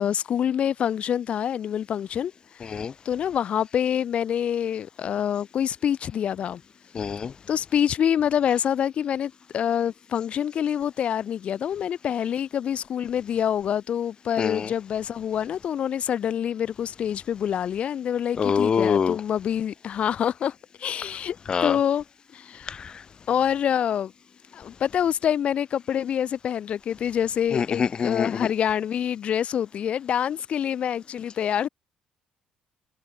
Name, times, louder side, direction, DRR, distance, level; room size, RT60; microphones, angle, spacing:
voice 1, 0.0-2.3 2.6-6.6 7.5-20.5 20.8-22.0 22.3-22.7 23.3-24.1 24.5-31.7, left 9 dB, 50° left, 2.2 m, -26 dB
voice 2, 6.9-7.3 14.4-14.7 18.4-19.2 21.5-21.8 22.7-22.8 27.5-28.3, left 6 dB, 35° left, 0.5 m, -24 dB
cardioid pair, 125°, 3 cm